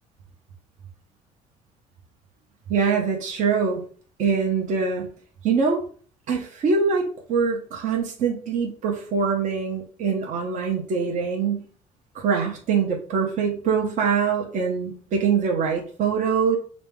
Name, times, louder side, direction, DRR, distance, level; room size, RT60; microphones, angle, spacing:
voice 1, 2.7-3.8 4.2-5.1 5.4-5.8 6.3-11.7 12.1-16.6, right 5 dB, 60° right, 1 dB, 0.8 m, -23 dB
5.0 x 2.0 x 3.4 m, 0.43 s
cardioid pair, 100°, 15 cm